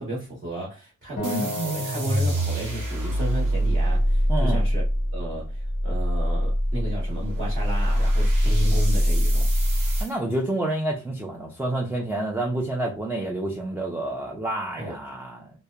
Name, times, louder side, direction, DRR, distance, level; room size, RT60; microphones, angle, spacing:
voice 1, 0.0-4.8 5.1-9.5 14.8-15.0, right 1 dB, 40° right, 1.0 m, -33 dB
Acoustic guitar, 1.2-4.4, left 1 dB, 25° left, 0.7 m, -37 dB
sound 1, 1.2-10.1, equal, 90° right, 0.8 m, -23 dB
voice 2, 4.3-4.6 10.0-15.5, right 1 dB, 5° right, 0.3 m, -28 dB
2.8 x 2.1 x 2.2 m
wide cardioid pair, 145°, 30 cm